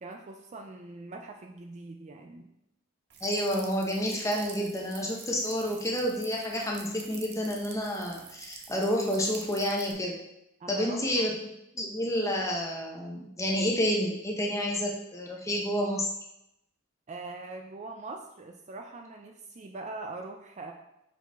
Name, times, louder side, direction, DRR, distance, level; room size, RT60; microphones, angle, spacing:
voice 1, 0.0-2.5 10.6-11.3 17.1-20.7, right 3 dB, 30° right, 3 dB, 0.4 m, -42 dB
sound 1, 3.1-9.9, right 6 dB, 50° right, 0.7 m, -48 dB
voice 2, 3.2-10.2 10.7-11.3 11.7-16.1, equal, 15° left, -1 dB, 0.8 m, -29 dB
5.7 x 4.9 x 3.5 m, 0.85 s
head